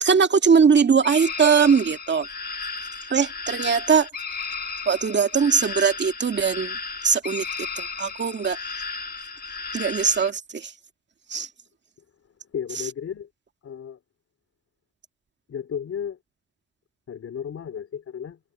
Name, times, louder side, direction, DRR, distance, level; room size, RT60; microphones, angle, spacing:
voice 1, 0.0-2.3 3.1-4.1 4.9-6.8 7.0-7.5 7.8-8.6 9.7-10.7 11.3-11.5, right 6 dB, 35° right, 2.1 m, -20 dB
sound 1, 1.0-10.3, left 4 dB, 30° left, 2.2 m, -34 dB
voice 2, 12.5-13.3 13.6-14.0 15.5-16.2 17.1-18.4, left 8 dB, 50° left, 3.6 m, -33 dB
cardioid pair, 90°, 30 cm